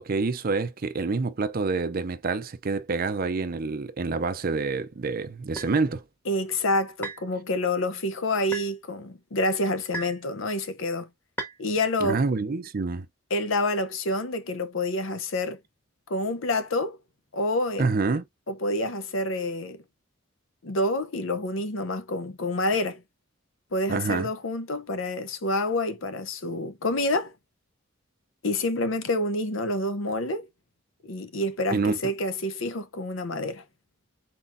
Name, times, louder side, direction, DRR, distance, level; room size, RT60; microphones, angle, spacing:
voice 1, 0.0-6.0 12.0-13.1 17.8-18.2 23.9-24.3 31.7-32.0, right 4 dB, 45° right, 0.5 m, -27 dB
sound 1, 5.6-5.7 7.0-7.3 8.5-8.7 9.9-10.2 11.4-11.6, right 2 dB, 10° left, 1.3 m, -35 dB
voice 2, 6.3-11.1 11.6-12.2 13.3-15.6 16.1-17.0 17.3-17.8 18.5-19.8 20.6-23.0 23.7-27.3 28.4-30.5 31.0-33.6, left 1 dB, 70° left, 0.8 m, -28 dB
4.4 x 4.0 x 2.6 m
head